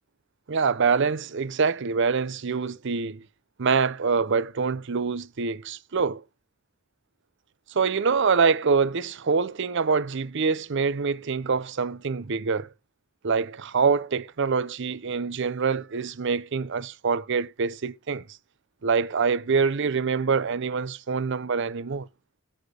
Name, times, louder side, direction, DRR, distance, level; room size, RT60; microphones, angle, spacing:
voice 1, 0.5-3.2 3.6-6.2 7.7-12.7 13.2-18.2 18.8-22.1, right 5 dB, 60° right, 0.6 m, -25 dB
13.0 x 4.4 x 4.8 m
head